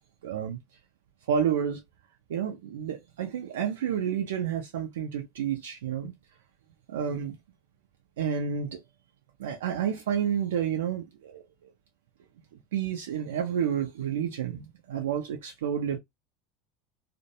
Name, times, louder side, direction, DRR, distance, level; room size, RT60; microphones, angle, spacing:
voice 1, 0.2-0.6 1.3-1.8 2.3-6.1 6.9-7.4 8.2-8.8 9.4-11.7 12.7-16.0, right 8 dB, 70° right, 0.4 m, -30 dB
2.5 x 2.1 x 2.7 m
figure-of-eight pair, 75°, 0 cm